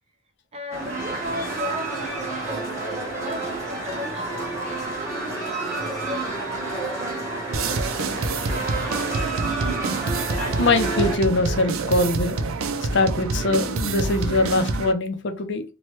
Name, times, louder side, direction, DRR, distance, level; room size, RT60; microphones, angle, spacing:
voice 1, 0.5-4.5 5.0-8.5, equal, 30° right, 0.5 m, -36 dB
sound 1, 0.7-11.2, right 2 dB, 15° right, 1.1 m, -30 dB
sound 2, 7.0-13.2, left 1 dB, 85° left, 1.0 m, -45 dB
sound 3, 7.5-14.9, right 3 dB, 80° right, 0.4 m, -27 dB
voice 2, 10.6-12.4 12.9-15.6, left 2 dB, 60° left, 0.6 m, -22 dB
2.9 x 2.2 x 2.9 m
head